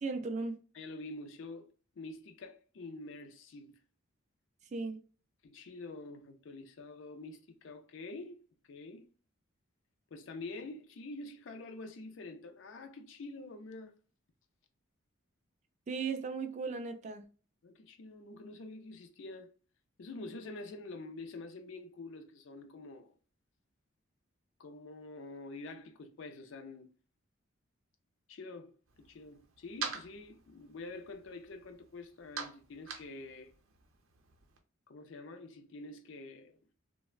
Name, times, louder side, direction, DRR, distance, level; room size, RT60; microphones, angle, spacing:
voice 1, 0.0-0.6 4.7-5.0 15.9-17.2, right 4 dB, 35° right, 0.3 m, -36 dB
voice 2, 0.7-1.7 2.0-3.8 5.4-9.1 10.1-13.9 17.6-19.5 20.0-23.1 24.6-26.9 28.3-33.5 34.9-36.6, left 2 dB, 65° left, 0.4 m, -47 dB
sound 1, 28.9-34.6, right 5 dB, 85° right, 0.6 m, -46 dB
3.1 x 2.0 x 2.3 m
head